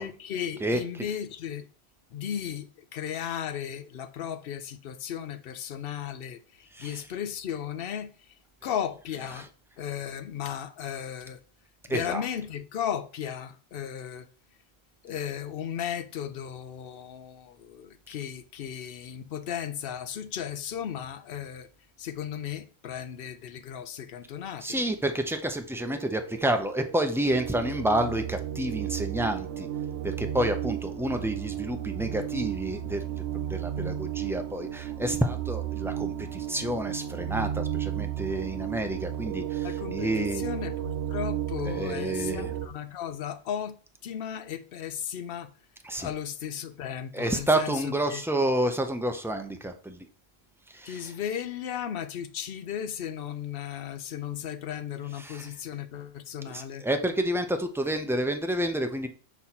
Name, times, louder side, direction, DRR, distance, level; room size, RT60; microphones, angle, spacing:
voice 1, 0.0-1.7 2.1-8.3 8.6-9.5 9.8-11.4 11.9-14.3 15.0-21.7 22.0-24.8 39.6-43.8 44.0-45.5 46.0-48.2 50.8-56.8, left 9 dB, 65° left, 0.8 m, -35 dB
voice 2, 0.6-1.0 6.7-7.0 9.1-9.5 11.9-12.2 24.6-29.7 30.0-33.0 33.5-40.5 41.6-42.5 45.8-46.1 47.1-50.0 50.7-51.1 55.1-55.5 56.5-59.1, right 1 dB, 5° right, 0.4 m, -29 dB
sound 1, 25.8-42.7, right 11 dB, 85° right, 0.9 m, -33 dB
6.0 x 4.1 x 4.2 m
omnidirectional pair, 1.1 m